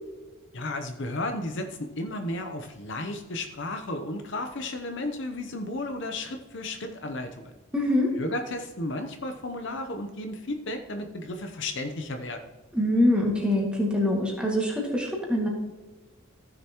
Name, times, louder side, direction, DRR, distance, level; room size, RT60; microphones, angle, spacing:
voice 1, 0.5-7.6 8.2-12.5, left 2 dB, 55° left, 6 dB, 0.8 m, -33 dB
voice 2, 7.7-8.1 12.7-15.5, left 1 dB, 5° right, -2 dB, 2.0 m, -24 dB
15.0 x 6.8 x 3.0 m, 1.2 s
head